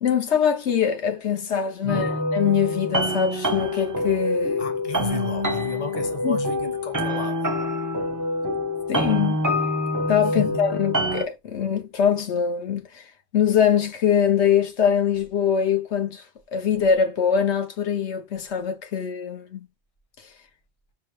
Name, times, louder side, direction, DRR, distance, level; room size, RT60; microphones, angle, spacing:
voice 1, 0.0-4.6 6.2-6.4 8.9-9.4 10.1-13.0 13.3-16.2 16.5-19.6, left 8 dB, 80° left, 1.1 m, -23 dB
voice 2, 1.8-2.2 4.6-7.5 10.4-10.7, left 3 dB, 35° left, 0.9 m, -34 dB
sound 1, 1.9-11.2, left 1 dB, 25° right, 0.5 m, -26 dB
5.9 x 2.2 x 3.1 m
omnidirectional pair, 1.1 m